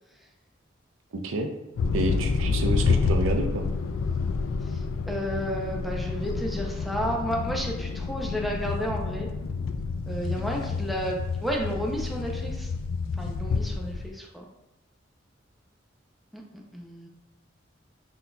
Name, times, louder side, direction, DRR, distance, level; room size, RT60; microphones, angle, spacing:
voice 1, 1.1-1.5 1.9-3.7, right 2 dB, 85° right, 4 dB, 0.5 m, -29 dB
sound 1, 1.8-14.1, left 4 dB, 85° left, 0.3 m, -29 dB
voice 2, 5.1-9.3 10.1-11.2 11.4-12.7 13.2-14.5 16.3-17.1, equal, ahead, -1 dB, 0.5 m, -32 dB
4.0 x 3.9 x 2.2 m, 1.0 s
head